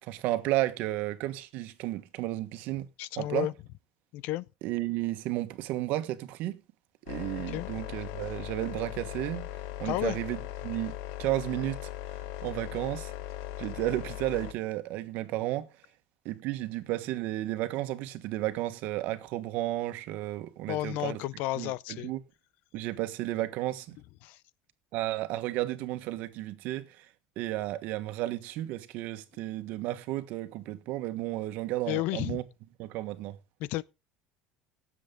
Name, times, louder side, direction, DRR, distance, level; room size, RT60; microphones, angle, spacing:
voice 1, 0.0-2.9 3.2-3.5 4.6-6.6 7.1-9.5 9.8-11.9 12.4-13.1 13.6-15.7 16.2-21.2 21.6-22.2 22.7-24.0 24.9-27.1 27.4-32.4 32.8-33.4, right 16 dB, 60° right, 1.4 m, -33 dB
voice 2, 3.0-3.5 4.1-4.4 7.5-7.7 9.8-10.2 20.7-22.1 24.2-24.4 31.9-32.4 33.6-33.8, left 16 dB, 60° left, 0.6 m, -32 dB
sound 1, 7.1-14.5, left 14 dB, 75° left, 0.9 m, -39 dB
17.0 x 7.5 x 3.8 m
cardioid pair, 150°, 3 cm